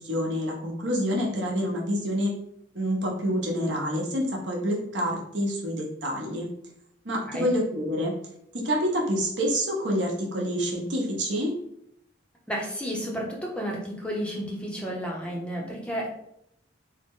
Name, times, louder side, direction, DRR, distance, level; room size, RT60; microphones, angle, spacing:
voice 1, 0.0-2.3 2.7-6.5 7.0-8.1 8.5-11.5, equal, 70° right, -2 dB, 0.9 m, -27 dB
voice 2, 12.5-16.1, equal, 5° left, -2 dB, 0.6 m, -32 dB
3.6 x 2.1 x 3.6 m, 0.74 s
head